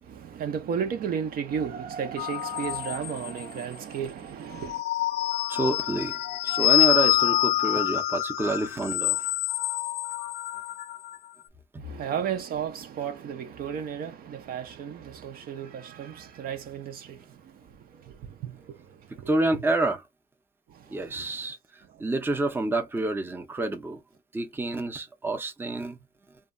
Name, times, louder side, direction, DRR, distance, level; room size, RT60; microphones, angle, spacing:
voice 1, 0.0-4.8 11.8-19.6 20.7-21.5 21.8-22.1, right 7 dB, 60° right, 0.6 m, -34 dB
sound 1, 2.2-3.6 4.5-11.2, left 15 dB, 80° left, 0.4 m, -26 dB
voice 2, 5.5-9.3 19.3-20.0 20.9-21.6 22.0-24.0 24.3-26.0, right 2 dB, 10° right, 0.6 m, -28 dB
2.7 x 2.3 x 2.4 m
cardioid pair, 110°, 17 cm